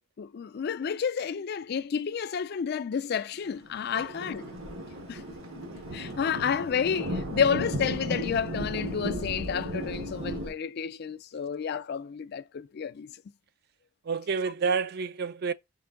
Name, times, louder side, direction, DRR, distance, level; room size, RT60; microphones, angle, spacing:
voice 1, 0.2-4.5 5.1-5.2 5.9-13.2, left 7 dB, 50° left, 0.3 m, -30 dB
Thunder, 3.6-10.5, equal, 85° right, 1.4 m, -35 dB
voice 2, 14.0-15.5, right 5 dB, 50° right, 0.3 m, -29 dB
5.3 x 2.6 x 3.6 m
head